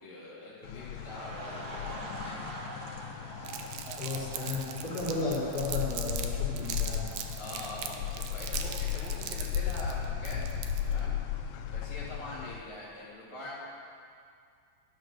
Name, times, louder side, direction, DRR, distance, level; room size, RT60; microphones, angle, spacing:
voice 1, 0.0-2.6 7.4-10.5 10.8-11.2 11.7-13.5, left 2 dB, 15° left, -7 dB, 1.3 m, -44 dB
sound 1, 0.6-12.6, left 9 dB, 90° left, 2.5 m, -36 dB
sound 2, 0.9-9.8 10.1-10.3, right 2 dB, 65° right, 0.9 m, -46 dB
Crumpling crinkling, 3.4-6.3 6.6-11.0, right 9 dB, 80° right, 2.5 m, -40 dB
voice 2, 4.0-7.2, left 2 dB, 30° left, -7 dB, 3.5 m, -34 dB
12.0 x 10.5 x 6.4 m, 2.3 s
omnidirectional pair, 3.9 m